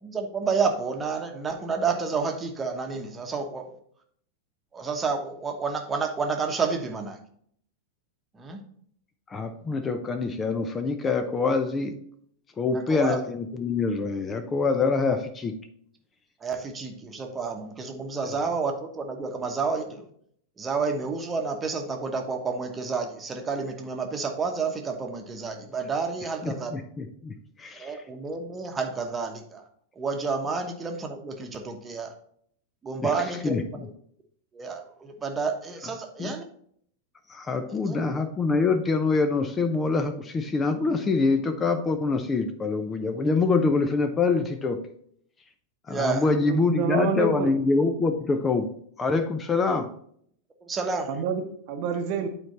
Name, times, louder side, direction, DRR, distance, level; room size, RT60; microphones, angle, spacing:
voice 1, 0.0-3.7 4.7-7.2 8.3-8.6 12.7-13.2 15.0-15.2 16.4-20.1 20.6-26.7 27.7-29.6 29.9-32.1 32.8-33.5 34.5-36.4 37.7-38.1 45.9-46.3 50.6-51.1, right 4 dB, 20° right, 4 dB, 1.2 m, -30 dB
voice 2, 9.3-11.9 12.6-15.5 26.4-28.0 33.0-33.1 33.4-33.6 36.2-36.3 37.3-44.8 45.9-48.7 49.0-49.9, left 4 dB, 20° left, 8 dB, 0.6 m, -25 dB
voice 3, 46.3-47.5 51.1-52.3, right 5 dB, 45° right, 6 dB, 0.9 m, -28 dB
9.1 x 4.5 x 4.2 m, 0.64 s
figure-of-eight pair, 90°, 0 cm